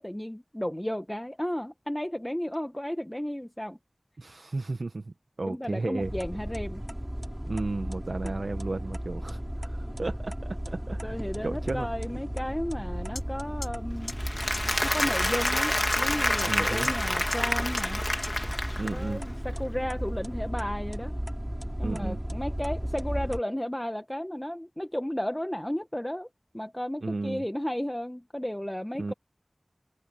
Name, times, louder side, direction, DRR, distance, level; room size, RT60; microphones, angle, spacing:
voice 1, 0.0-3.8 5.5-6.8 8.2-8.4 11.0-14.2 14.8-18.0 18.9-21.1 21.8-26.3 26.5-29.1, equal, 15° left, 1.0 m, -33 dB
voice 2, 4.2-6.1 7.5-11.1 11.4-11.9 16.5-16.9 18.7-19.2 21.8-22.2 27.0-27.4 29.0-29.1, right 3 dB, 85° right, 1.0 m, -34 dB
sound 1, 6.0-23.4, equal, 10° right, 4.1 m, -35 dB
sound 2, 13.2-13.3 13.6-13.7 14.1-14.2 14.5-14.6 15.0-15.1 15.5-15.6 15.9-16.0 16.4-16.5 16.8-16.9 17.3-17.4 17.8-17.9 18.2-18.3, left 2 dB, 60° left, 6.8 m, -35 dB
Applause, 14.1-19.1, left 1 dB, 30° left, 2.4 m, -28 dB
wide cardioid pair, 50°, 0 cm